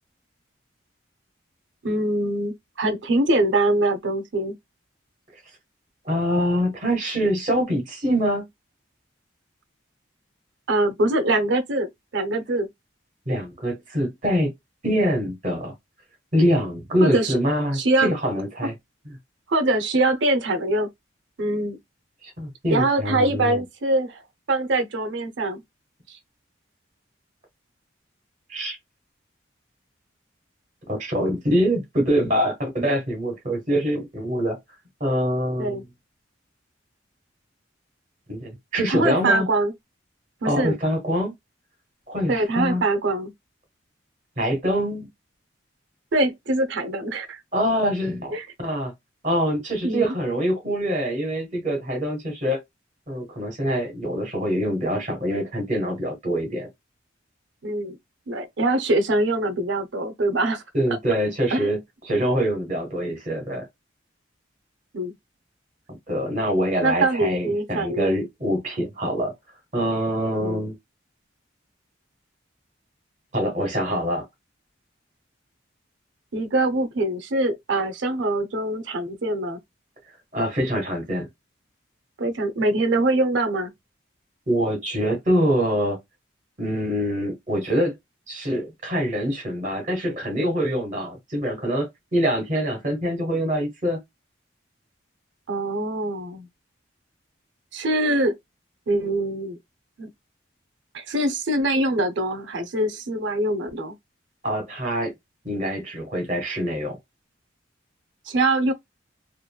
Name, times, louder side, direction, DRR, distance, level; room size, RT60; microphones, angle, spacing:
voice 1, 1.8-4.6 10.7-12.7 17.0-17.4 17.7-18.2 19.5-20.9 21.4-21.8 22.7-24.2 24.5-25.6 26.1-26.2 35.6-35.8 38.9-39.7 40.4-40.7 42.3-43.3 46.1-47.4 48.3-48.5 49.8-50.0 57.6-58.0 58.3-60.6 61.5-61.7 64.9-65.1 66.8-68.1 70.4-70.6 76.3-79.6 82.2-83.7 95.5-96.5 97.7-98.3 98.9-99.6 100.0-100.1 100.9-104.0 108.3-108.7, right 2 dB, 70° right, 0.6 m, -23 dB
voice 2, 6.0-8.5 13.3-14.5 14.8-15.7 16.3-18.7 19.1-19.2 22.4-23.6 28.5-28.8 30.9-34.6 35.0-35.8 38.3-39.5 40.4-41.3 42.1-42.8 44.4-45.1 47.5-48.9 49.2-52.6 53.1-56.7 60.7-61.8 62.1-63.7 66.1-69.3 69.7-70.7 73.3-74.2 80.3-81.3 84.5-86.0 86.6-87.9 88.3-94.0 104.4-105.1 105.4-107.0, equal, 40° right, 1.3 m, -24 dB
2.9 x 2.5 x 2.2 m
head